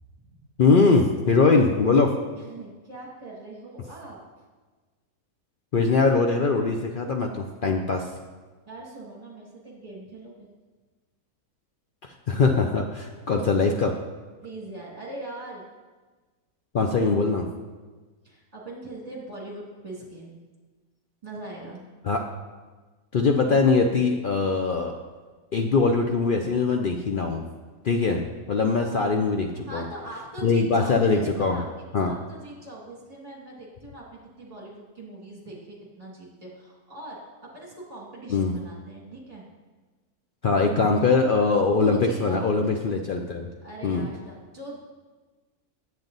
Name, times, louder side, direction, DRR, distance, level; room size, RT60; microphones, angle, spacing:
voice 1, 0.6-2.1 5.7-8.1 12.0-14.0 16.7-17.5 22.0-22.3 23.1-24.9 25.5-27.4 27.8-29.9 30.4-31.6 31.9-32.1 38.3-38.5 40.4-43.5 43.8-44.1, left 4 dB, 75° left, 3 dB, 0.4 m, -22 dB
voice 2, 2.3-4.2 8.7-10.5 14.4-15.7 18.2-20.4 21.2-21.8 29.7-31.7 31.9-39.4 41.0-41.2 41.7-42.4 43.6-44.8, right 2 dB, 25° right, -3 dB, 2.2 m, -41 dB
8.9 x 7.9 x 3.9 m, 1.3 s
omnidirectional pair, 1.6 m